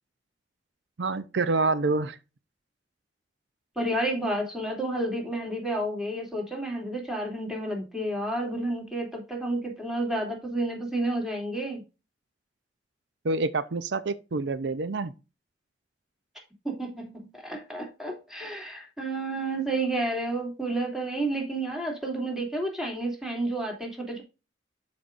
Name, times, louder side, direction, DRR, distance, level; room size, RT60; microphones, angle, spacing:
voice 1, 1.0-2.2 13.2-15.1, right 3 dB, 75° right, 0.5 m, -27 dB
voice 2, 3.8-11.8 16.6-24.2, right 1 dB, 5° right, 2.7 m, -30 dB
12.0 x 5.2 x 2.5 m
head